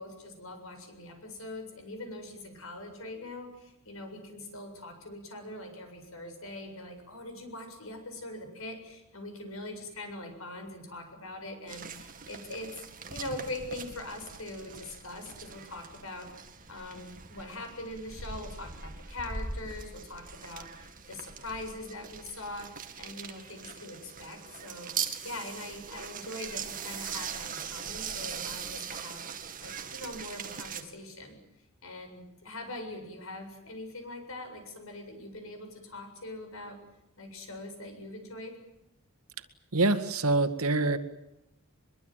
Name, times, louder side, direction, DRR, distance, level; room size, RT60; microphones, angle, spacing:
voice 1, 0.0-12.8 13.1-16.3 16.7-29.2 29.6-31.4 31.8-36.8 37.2-38.6, left 2 dB, 75° left, 6 dB, 7.6 m, -42 dB
sound 1, 11.7-30.8, right 6 dB, 40° right, 2.3 m, -41 dB
voice 2, 39.7-41.0, right 2 dB, 90° right, 9 dB, 2.0 m, -25 dB
23.5 x 23.0 x 9.2 m, 0.87 s
head